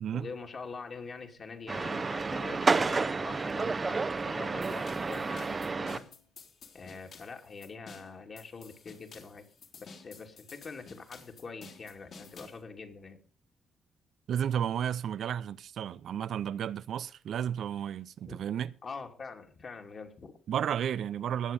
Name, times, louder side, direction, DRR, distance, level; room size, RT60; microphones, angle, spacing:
voice 1, 0.1-6.1 6.7-9.4 9.7-13.2 18.3-18.4 18.8-20.4, left 4 dB, 45° left, 2.7 m, -44 dB
sound 1, 1.7-6.0, right 4 dB, 30° right, 0.9 m, -30 dB
sound 2, 4.6-12.6, left 4 dB, 60° left, 3.6 m, -52 dB
voice 2, 14.3-18.7 20.5-21.5, right 9 dB, 70° right, 0.6 m, -32 dB
19.0 x 7.0 x 5.4 m
cardioid pair, 85°, 0 cm